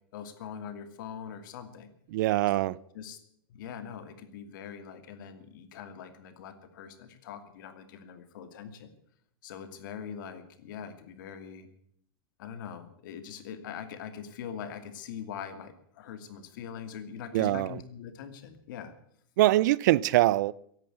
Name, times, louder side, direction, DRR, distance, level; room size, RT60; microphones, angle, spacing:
voice 1, 0.1-1.9 2.9-3.2 3.5-8.9 9.4-11.7 12.4-18.9, left 8 dB, 60° left, 9 dB, 2.6 m, -42 dB
voice 2, 2.1-2.8 17.3-17.8 19.4-20.5, right 16 dB, 50° right, 22 dB, 0.5 m, -23 dB
16.5 x 11.0 x 8.1 m, 0.67 s
supercardioid pair, 165°, 12 cm